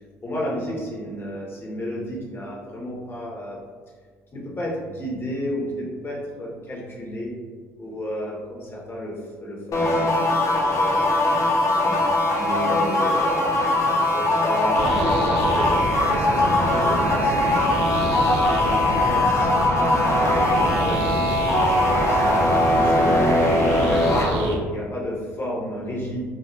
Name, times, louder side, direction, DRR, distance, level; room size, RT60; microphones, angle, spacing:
voice 1, 0.2-3.6 4.3-7.3 7.8-11.0 11.5-12.0 12.3-13.5 13.9-17.6 17.9-18.2 18.7-22.3 22.8-23.4 23.8-26.2, equal, 30° left, -4 dB, 1.1 m, -32 dB
sound 1, 9.7-24.3, left 1 dB, 45° left, 0.6 m, -21 dB
sound 2, 14.7-24.6, right 2 dB, 75° right, 0.5 m, -28 dB
2.6 x 2.3 x 3.2 m, 1.5 s
hypercardioid pair, 65°, 7 cm